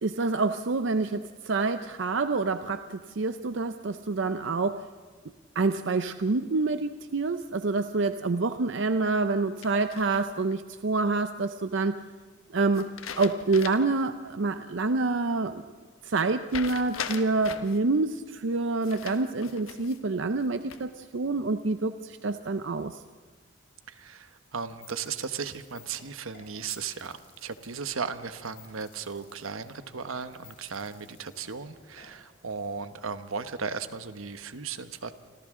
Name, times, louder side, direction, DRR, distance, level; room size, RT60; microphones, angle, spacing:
voice 1, 0.0-4.9 5.5-12.0 12.5-12.9 13.2-15.7 16.0-23.0, right 3 dB, 65° right, 10 dB, 0.6 m, -27 dB
sound 1, 9.6-10.5 12.7-14.0 14.4-14.5 16.5-17.8 18.8-20.0 20.4-21.0, left 6 dB, 85° left, 1.2 m, -39 dB
voice 2, 23.9-35.1, right 5 dB, 85° right, 10 dB, 1.1 m, -36 dB
sound 2, 24.6-32.1, left 7 dB, 50° left, 7.1 m, -55 dB
29.0 x 26.0 x 3.7 m, 1.4 s
head